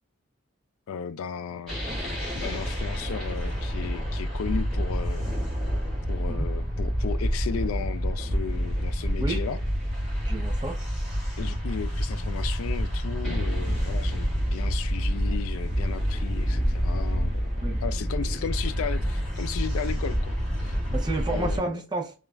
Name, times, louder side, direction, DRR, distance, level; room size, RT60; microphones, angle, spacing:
voice 1, 0.9-1.8 2.3-5.3 6.1-9.6 11.4-17.5 17.8-20.3 20.6-20.8 21.3-21.8, left 7 dB, 65° left, 0.3 m, -35 dB
sound 1, 1.7-21.6, equal, ahead, 1.4 m, -28 dB
voice 2, 10.2-10.8 17.6-17.8 20.9-22.1, right 2 dB, 20° right, 0.5 m, -31 dB
3.1 x 2.3 x 2.3 m
head